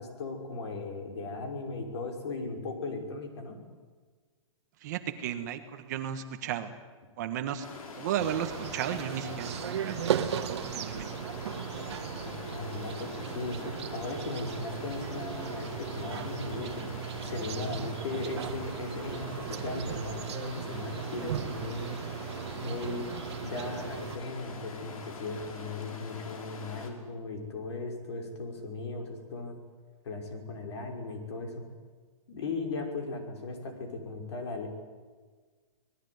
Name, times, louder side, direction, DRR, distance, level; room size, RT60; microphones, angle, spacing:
voice 1, 0.0-3.6 12.2-21.9 22.6-23.1 23.4-29.5 30.0-31.6 32.3-34.7, left 3 dB, 50° left, 4 dB, 5.8 m, -37 dB
voice 2, 4.8-6.7 7.2-7.7 8.0-10.0 10.6-11.1 17.7-17.9, right 10 dB, 30° right, 8 dB, 1.5 m, -34 dB
Stream, 7.6-26.9, left 4 dB, 90° left, 5.5 m, -44 dB
sound 1, 8.2-24.2, right 9 dB, 50° right, 1.6 m, -37 dB
27.5 x 19.5 x 9.6 m, 1.5 s
hypercardioid pair, 180°, 18 cm